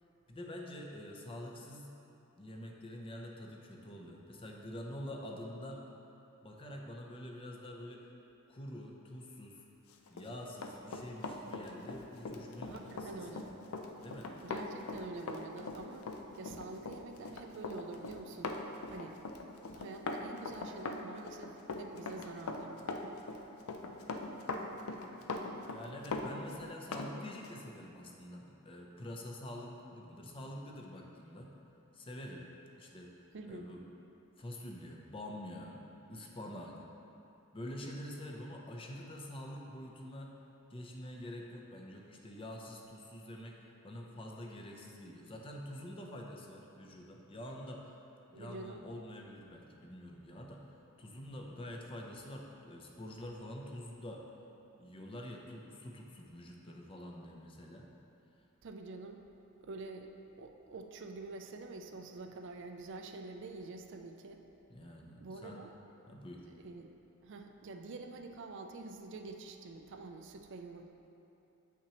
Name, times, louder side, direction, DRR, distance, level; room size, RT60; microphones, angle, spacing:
voice 1, 0.3-1.9 2.4-5.8 6.4-8.1 8.5-9.6 10.1-13.6 14.0-14.3 25.7-31.5 31.9-32.4 32.8-33.1 33.4-33.8 34.4-35.8 36.1-36.8 37.5-40.4 40.7-43.6 43.8-47.9 48.3-54.2 54.8-57.9 64.7-65.6 66.1-66.5, left 1 dB, 25° left, 0 dB, 0.5 m, -46 dB
Run, 10.1-27.1 27.4-27.6, left 3 dB, 75° left, 0.5 m, -41 dB
voice 2, 12.7-13.5 14.4-16.1 16.4-18.6 18.9-19.2 19.7-22.8 33.3-33.7 48.3-48.8 58.6-59.2 59.6-64.4 65.2-65.7 66.6-66.9 67.2-70.9, right 3 dB, 55° right, 4 dB, 0.4 m, -47 dB
8.2 x 5.8 x 2.9 m, 2.9 s
head